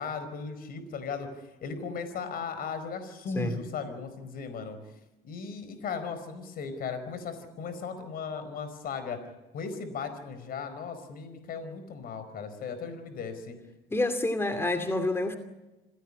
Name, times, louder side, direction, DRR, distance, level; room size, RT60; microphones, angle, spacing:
voice 1, 0.0-4.8 5.2-9.2 9.5-13.6, left 5 dB, 60° left, 4.8 m, -37 dB
voice 2, 13.9-15.4, left 2 dB, 15° left, 2.6 m, -28 dB
27.0 x 17.5 x 9.9 m
cardioid pair, 110°, 17 cm